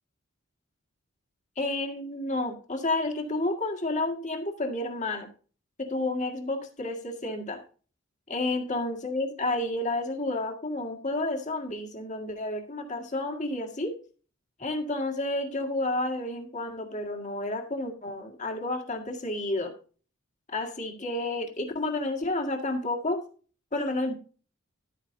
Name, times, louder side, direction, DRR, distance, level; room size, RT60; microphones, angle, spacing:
voice 1, 1.6-5.3 5.8-7.6 8.3-13.9 14.6-19.7 20.5-23.2 23.7-24.2, left 2 dB, 35° left, 4 dB, 1.9 m, -30 dB
12.0 x 9.1 x 2.7 m, 0.39 s
head